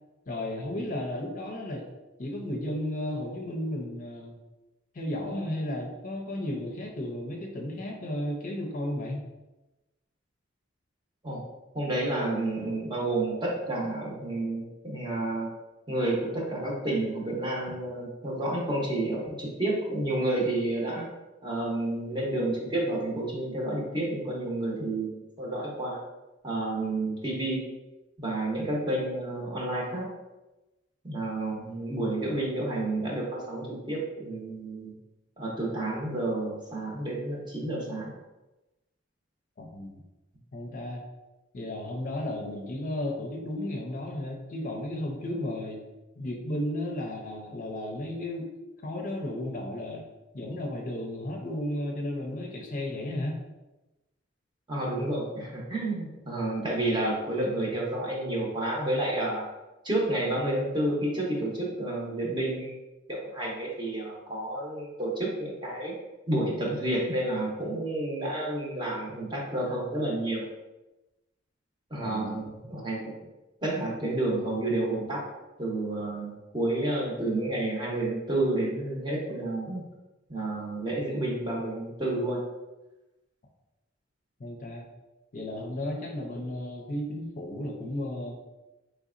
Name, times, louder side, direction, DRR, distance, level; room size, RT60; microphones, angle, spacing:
voice 1, 0.3-1.9 2.2-4.4 4.9-9.2 39.6-40.0 40.5-41.0 41.5-45.8 46.2-48.5 48.8-50.1 50.3-53.4 72.0-72.5 84.4-84.9 85.3-88.4, left 1 dB, 45° left, 1 dB, 0.5 m, -34 dB
voice 2, 11.7-15.5 15.9-21.1 21.4-26.0 26.4-27.6 28.2-30.1 31.0-34.9 35.4-38.1 54.7-59.5 59.8-62.7 63.1-65.9 66.3-70.5 71.9-73.1 73.6-75.2 75.6-79.8 80.3-82.4, right 1 dB, 25° right, -3 dB, 0.9 m, -30 dB
3.9 x 3.2 x 2.5 m, 1.0 s
head